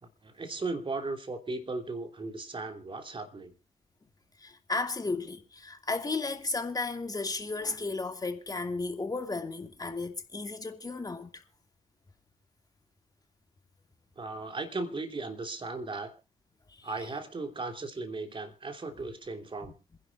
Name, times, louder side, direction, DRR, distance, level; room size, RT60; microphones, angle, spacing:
voice 1, 0.0-3.5 14.2-16.1 16.8-19.7, right 3 dB, 30° right, 3.0 m, -37 dB
voice 2, 4.4-11.4 16.7-16.9 19.6-19.7, left 3 dB, 20° left, 2.4 m, -34 dB
27.0 x 11.0 x 2.6 m
hypercardioid pair, 45°, 17 cm